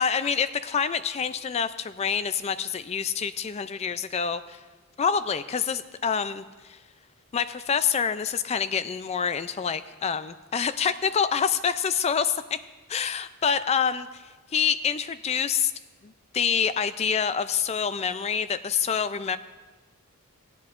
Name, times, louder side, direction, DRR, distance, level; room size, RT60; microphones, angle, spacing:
voice 1, 0.0-4.6 5.0-6.8 7.3-12.3 12.9-14.2 14.5-15.7 16.0-19.4, left 7 dB, 30° left, 13 dB, 0.3 m, -26 dB
16.0 x 10.5 x 2.5 m, 1.3 s
head